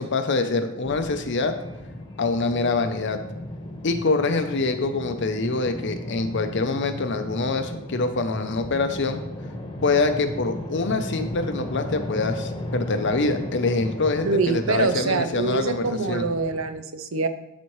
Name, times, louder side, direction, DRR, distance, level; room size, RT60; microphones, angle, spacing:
voice 1, 0.0-1.5 2.2-3.2 3.8-9.2 9.8-16.2, left 3 dB, 55° left, 8 dB, 0.7 m, -25 dB
sound 1, 0.8-16.7, left 1 dB, 20° left, 1.1 m, -36 dB
voice 2, 14.2-17.3, right 4 dB, 70° right, 10 dB, 0.6 m, -25 dB
12.0 x 4.2 x 3.2 m, 0.88 s
head